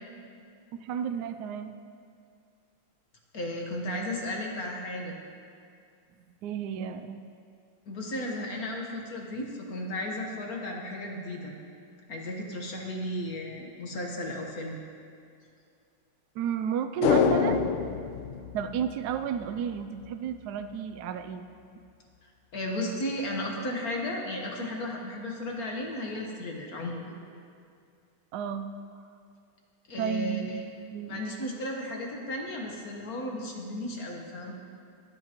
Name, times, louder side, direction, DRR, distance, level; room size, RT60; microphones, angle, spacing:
voice 1, 0.7-1.7 6.4-7.2 16.4-17.6 18.5-21.4 28.3-28.7 30.0-30.6 30.9-31.3, right 8 dB, 85° right, 8 dB, 0.8 m, -32 dB
voice 2, 3.3-5.2 7.9-11.6 12.1-14.8 22.5-27.2 29.9-30.6 31.1-34.5, left 1 dB, 50° left, 0 dB, 1.6 m, -34 dB
sound 1, 17.0-19.5 19.8-19.9, left 6 dB, 85° left, 1.5 m, -26 dB
24.0 x 8.5 x 3.0 m, 2.3 s
omnidirectional pair, 2.3 m